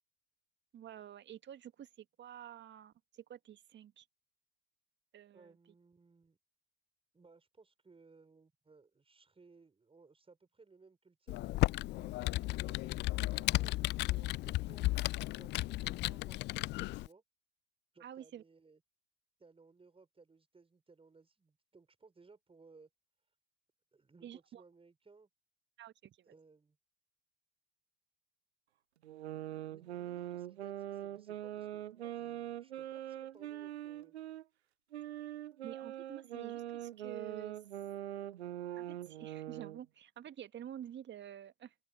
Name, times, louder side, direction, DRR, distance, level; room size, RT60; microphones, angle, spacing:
voice 1, 0.7-4.1 5.1-5.5 18.0-18.4 24.2-24.6 25.8-26.3 35.6-37.6 38.8-41.7, right 10 dB, 35° right, 1.9 m, -49 dB
voice 2, 5.3-6.4 7.1-12.9 13.3-14.9 15.4-17.2 17.9-18.8 19.4-22.9 23.9-25.3 26.3-26.8 29.7-34.1, right 4 dB, 15° right, 6.2 m, -62 dB
Computer keyboard, 11.3-17.1, left 18 dB, 35° left, 0.4 m, -34 dB
sound 1, 29.0-34.4 34.9-39.8, right 12 dB, 75° right, 1.1 m, -43 dB
open air
figure-of-eight pair, 75°, 33 cm